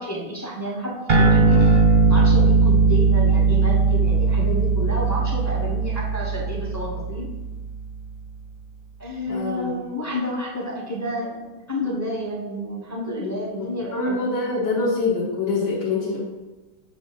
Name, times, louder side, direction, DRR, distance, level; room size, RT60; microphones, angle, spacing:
voice 1, 0.0-1.6 2.1-7.3 9.0-14.2, equal, 15° left, -3 dB, 0.6 m, -30 dB
sound 1, 1.1-7.9, right 4 dB, 50° right, 0.6 m, -19 dB
voice 2, 9.3-9.7 13.6-16.2, left 3 dB, 75° left, -8 dB, 1.7 m, -25 dB
7.5 x 2.7 x 5.1 m, 1.1 s
omnidirectional pair, 1.8 m